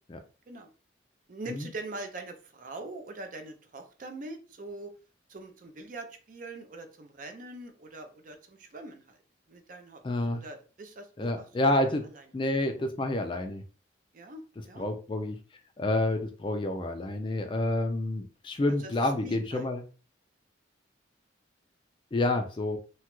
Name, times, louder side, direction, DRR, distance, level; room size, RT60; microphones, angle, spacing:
voice 1, 1.3-4.9 5.3-9.2 9.5-10.0 10.3-11.7 12.1-12.2 14.1-14.8 18.8-19.7, right 2 dB, 45° right, 6 dB, 0.4 m, -43 dB
voice 2, 10.0-10.4 11.2-12.0 12.3-13.6 14.8-15.4 15.8-19.8 22.1-22.8, left 1 dB, 25° left, 7 dB, 0.3 m, -28 dB
2.9 x 2.3 x 2.9 m, 0.37 s
head